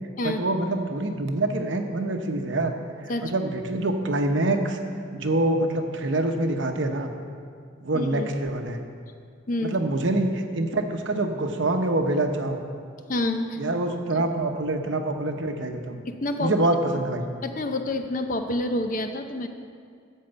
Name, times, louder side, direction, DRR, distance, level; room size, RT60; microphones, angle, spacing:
voice 1, 0.2-2.8 3.2-4.8 5.1-7.1 7.8-8.8 9.6-12.6 13.6-16.0 16.4-17.3, right 2 dB, 65° right, 5 dB, 0.9 m, -25 dB
voice 2, 7.9-8.3 9.5-9.7 13.1-13.6 14.1-14.2 16.0-16.5 17.4-19.5, left 1 dB, 40° left, 6 dB, 0.6 m, -28 dB
13.0 x 4.6 x 8.0 m, 2.2 s
head